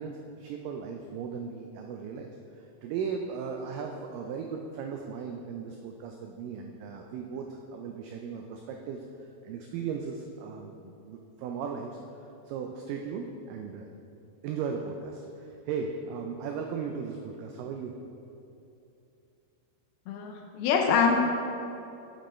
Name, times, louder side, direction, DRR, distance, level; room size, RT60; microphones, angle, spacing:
voice 1, 0.0-2.3 2.8-12.0 12.5-13.9 14.4-18.0, right 6 dB, 90° right, 3 dB, 1.9 m, -37 dB
voice 2, 20.1-21.2, left 6 dB, 90° left, 2 dB, 2.7 m, -24 dB
8.8 x 5.4 x 4.2 m, 2.8 s
omnidirectional pair, 4.4 m